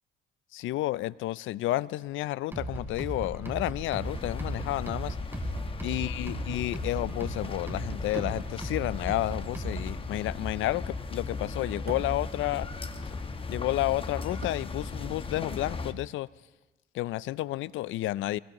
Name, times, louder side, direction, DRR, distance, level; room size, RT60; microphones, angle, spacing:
voice 1, 0.5-5.2 5.8-12.7 13.5-16.3 16.9-18.4, left 16 dB, 80° left, 0.4 m, -31 dB
sound 1, 2.5-10.0, right 1 dB, 10° right, 3.5 m, -37 dB
sound 2, 3.9-15.9, left 3 dB, 25° left, 1.0 m, -37 dB
sound 3, 8.0-13.3 13.5-15.4 15.6-15.8, right 5 dB, 55° right, 1.8 m, -47 dB
23.5 x 21.0 x 3.0 m
cardioid pair, 90°, 20 cm